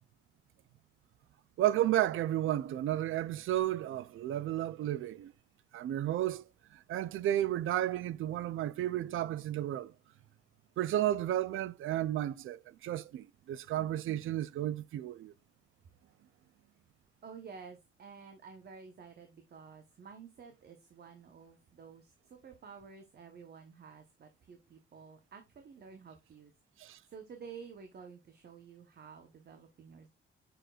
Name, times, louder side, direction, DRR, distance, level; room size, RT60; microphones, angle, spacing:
voice 1, 1.6-5.3 5.7-6.4 6.9-9.9 10.8-15.3 26.8-27.0, right 12 dB, 75° right, 0.4 m, -32 dB
voice 2, 17.2-26.5 27.1-30.1, right 6 dB, 50° right, 0.9 m, -51 dB
6.8 x 6.0 x 2.3 m
cardioid pair, 130°, 21 cm